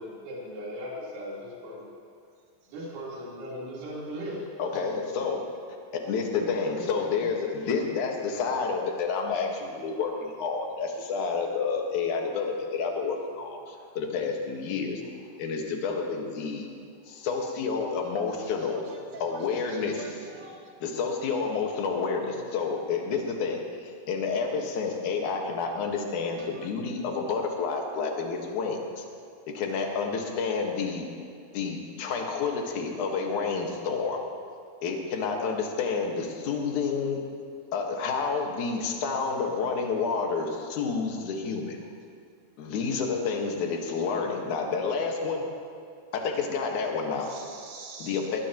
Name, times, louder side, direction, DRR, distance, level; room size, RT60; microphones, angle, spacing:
voice 1, 0.0-1.9 2.7-4.8 5.2-5.3 6.4-6.5 6.8-6.9, equal, 80° right, -6 dB, 6.3 m, -38 dB
voice 2, 4.6-5.4 5.9-15.0 15.4-16.7 17.1-18.8 19.2-20.2 20.8-29.0 29.5-31.0 31.5-34.2 34.8-37.2 37.7-41.8 42.6-45.4 46.1-47.3 48.0-48.4, left 5 dB, 60° left, 1 dB, 2.2 m, -29 dB
voice 3, 19.7-20.6 47.3-48.2, right 3 dB, 45° right, -2 dB, 2.7 m, -43 dB
21.0 x 20.0 x 3.0 m, 2.4 s
omnidirectional pair, 5.3 m